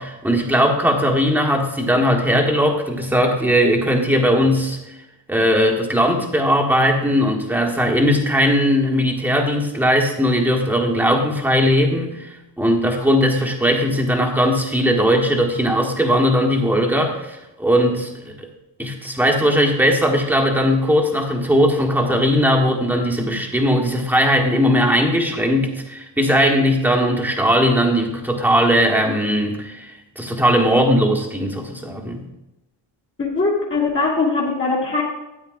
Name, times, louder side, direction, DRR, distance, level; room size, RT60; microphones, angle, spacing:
voice 1, 0.0-5.0 5.3-18.5 18.8-32.2, equal, 5° right, 0 dB, 1.3 m, -18 dB
voice 2, 33.2-35.0, left 3 dB, 30° left, -6 dB, 1.7 m, -21 dB
13.0 x 9.4 x 2.5 m, 0.96 s
wide cardioid pair, 145°, 45 cm